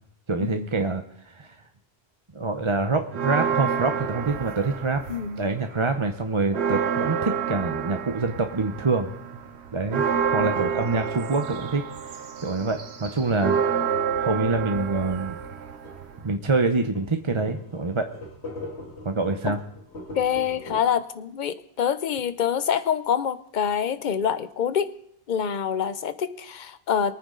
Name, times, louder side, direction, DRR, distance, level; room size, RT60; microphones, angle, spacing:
voice 1, 0.3-1.6 2.3-5.0 5.4-9.1 9.7-10.0 10.3-11.8 12.4-13.6 14.2-15.4 16.2-18.1 19.0-19.6, right 3 dB, 30° right, 6 dB, 0.8 m, -25 dB
sound 1, 3.1-5.5 5.9-16.3, right 7 dB, 75° right, 1.3 m, -28 dB
voice 2, 5.1-5.4 19.5-19.6 20.1-24.9 25.3-27.1, left 8 dB, 50° left, 13 dB, 0.8 m, -26 dB
sound 2, 15.8-16.1 16.6-16.7 17.0-17.1 17.4-20.8, left 2 dB, 80° left, 2.3 m, -40 dB
22.5 x 9.5 x 3.8 m, 0.73 s
omnidirectional pair, 1.1 m